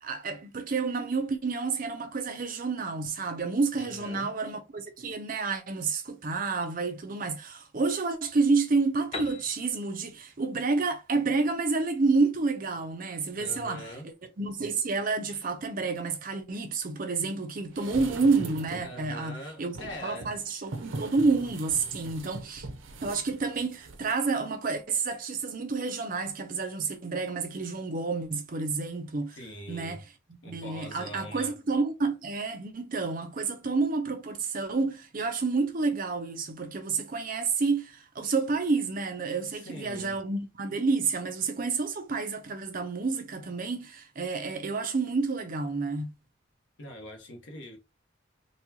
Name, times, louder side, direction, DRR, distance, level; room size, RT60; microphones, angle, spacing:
voice 1, 0.0-19.8 20.0-22.7 23.0-29.4 29.7-46.1, right 4 dB, 45° right, 0.6 m, -29 dB
voice 2, 3.7-4.3 13.3-14.1 18.8-20.3 29.3-30.0 30.4-31.5 39.6-40.2 46.8-47.8, left 1 dB, 70° left, 1.1 m, -42 dB
Piano, 9.1-12.8, left 3 dB, 30° left, 0.7 m, -44 dB
sound 1, 17.7-19.0 19.7-24.2 24.5-24.6, right 2 dB, 85° right, 0.6 m, -41 dB
4.1 x 2.3 x 2.8 m
head